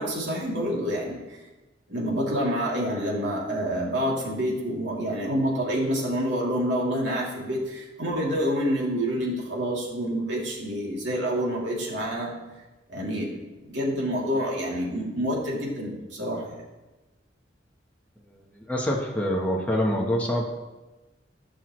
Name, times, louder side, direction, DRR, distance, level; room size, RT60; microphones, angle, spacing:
voice 1, 0.0-1.4 1.9-12.3 12.9-16.6, equal, 75° right, -5 dB, 2.9 m, -28 dB
voice 2, 18.3-20.4, equal, 10° left, -3 dB, 1.1 m, -26 dB
15.5 x 6.3 x 3.2 m, 1.1 s
head